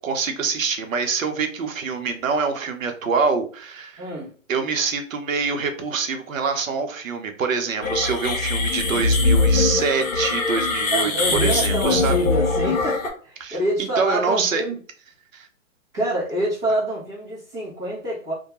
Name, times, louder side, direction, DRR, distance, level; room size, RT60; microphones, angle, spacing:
voice 1, 0.0-4.1 4.5-12.2 13.4-14.6 15.3-15.5, right 5 dB, 75° right, 6 dB, 0.8 m, -25 dB
voice 2, 4.0-4.3 10.9-14.8 15.9-18.3, right 1 dB, 15° right, -11 dB, 0.4 m, -26 dB
sound 1, 7.8-13.1, left 3 dB, 80° left, 0.8 m, -22 dB
2.3 x 2.1 x 2.8 m, 0.41 s
hypercardioid pair, 145°, 40 cm